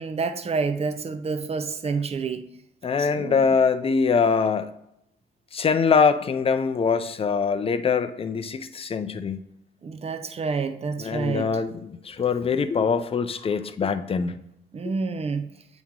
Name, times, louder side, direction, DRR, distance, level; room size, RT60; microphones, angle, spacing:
voice 1, 0.0-2.4 3.0-3.4 9.8-11.5 14.7-15.5, right 4 dB, 30° right, 0.6 m, -28 dB
voice 2, 2.8-4.7 5.5-9.4 11.0-14.4, left 5 dB, 30° left, 0.5 m, -23 dB
8.3 x 3.0 x 3.7 m
cardioid pair, 90°, 20 cm